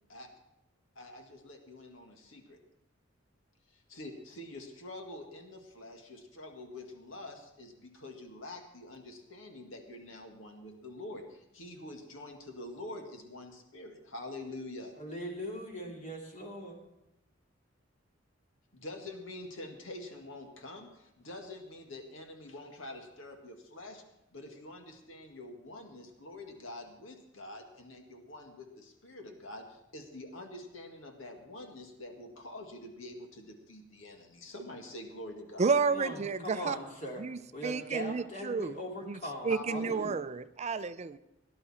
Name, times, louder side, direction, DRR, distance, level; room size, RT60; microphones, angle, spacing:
voice 1, 1.0-2.6 3.7-14.9 18.7-24.0 24.3-35.7 39.5-40.1, left 1 dB, 90° left, 4 dB, 2.0 m, -46 dB
voice 2, 15.0-16.8 35.9-37.2 37.5-40.1, equal, 40° left, 0 dB, 2.9 m, -40 dB
voice 3, 35.6-36.8 37.2-38.7 39.1-41.2, right 5 dB, 35° right, 13 dB, 0.4 m, -31 dB
18.0 x 11.0 x 4.3 m, 0.91 s
head